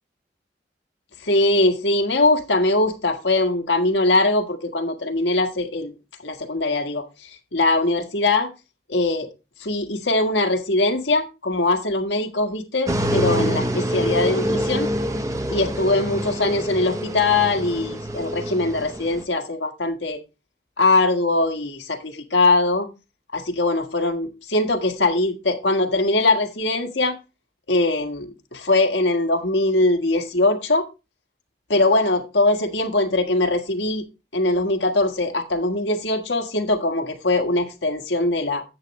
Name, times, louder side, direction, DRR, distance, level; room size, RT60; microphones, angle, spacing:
voice 1, 1.2-5.9 6.2-7.1 7.5-8.5 8.9-9.3 9.6-14.9 15.5-20.2 20.8-22.9 23.3-27.2 27.7-30.9 31.7-34.0 34.3-38.6, left 2 dB, 80° left, 1.6 m, -21 dB
sound 1, 12.9-19.2, equal, 20° right, 0.9 m, -26 dB
10.5 x 8.4 x 3.1 m
head